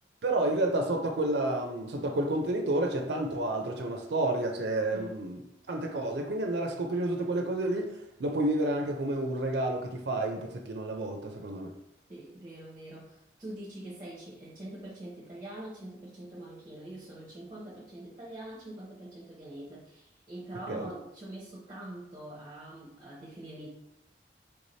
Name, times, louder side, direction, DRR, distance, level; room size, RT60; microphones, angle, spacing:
voice 1, 0.2-5.4 5.7-7.9 8.2-11.7 20.7-20.9, right 1 dB, 65° right, 0.5 m, -30 dB
voice 2, 4.9-5.2 12.1-23.7, right 1 dB, 20° right, 0.8 m, -44 dB
4.6 x 2.7 x 3.1 m
head